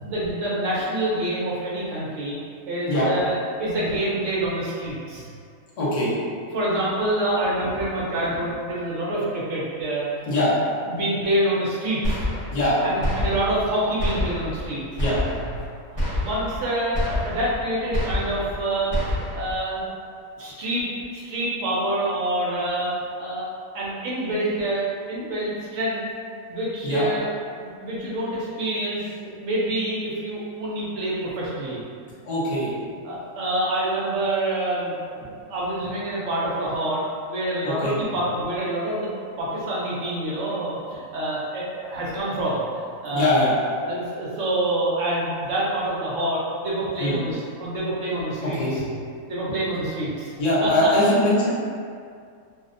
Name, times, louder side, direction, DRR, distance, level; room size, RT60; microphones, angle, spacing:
voice 1, 0.0-2.4 2.7-5.3 6.5-10.3 10.9-12.2 12.8-14.8 15.9-19.8 20.4-22.9 23.2-23.5 23.7-26.0 26.5-27.3 27.5-31.8 32.4-32.6 33.0-43.5 43.9-48.8 49.3-50.9, right 1 dB, 70° right, -7 dB, 0.8 m, -27 dB
voice 2, 5.8-6.1 10.3-10.5 12.5-12.8 15.0-15.2 26.8-27.1 32.2-32.7 37.6-38.0 43.1-43.5 47.0-47.2 48.6-48.7 50.4-51.5, left 1 dB, 80° left, -9 dB, 0.3 m, -21 dB
sound 1, 12.0-12.7 13.0-13.7 14.0-14.7 15.0-15.7 16.0-16.6 16.9-17.6 17.9-18.6 18.9-19.6, left 1 dB, 30° right, 0.7 m, -27 dB
2.6 x 2.0 x 2.4 m, 2.2 s
omnidirectional pair, 1.6 m